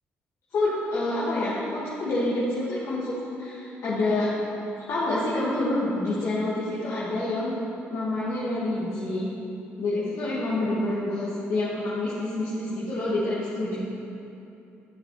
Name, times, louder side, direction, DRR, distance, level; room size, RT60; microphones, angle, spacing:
voice 1, 0.5-4.3 4.9-7.5 7.9-9.3 9.8-13.8, left 2 dB, 65° left, -9 dB, 1.8 m, -27 dB
12.5 x 6.3 x 3.2 m, 2.8 s
supercardioid pair, 60°, 5 cm